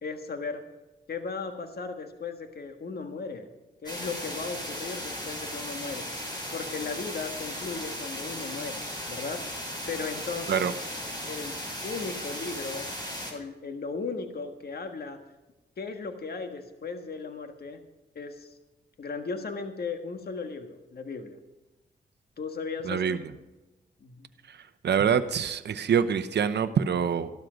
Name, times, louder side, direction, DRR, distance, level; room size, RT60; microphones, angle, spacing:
voice 1, 0.0-0.6 1.1-3.5 3.8-6.1 6.5-9.4 9.9-10.7 11.3-11.6 11.8-12.9 13.3-15.2 15.8-17.8 18.1-18.5 19.0-21.4 22.4-23.2 24.0-24.3, left 4 dB, 60° left, 6 dB, 1.6 m, -36 dB
sound 1, 3.9-13.3, equal, 25° left, 6.3 m, -36 dB
voice 2, 22.8-23.2 24.5-27.3, right 7 dB, 70° right, 10 dB, 0.8 m, -25 dB
13.5 x 12.5 x 5.1 m, 1.1 s
cardioid pair, 60°, 18 cm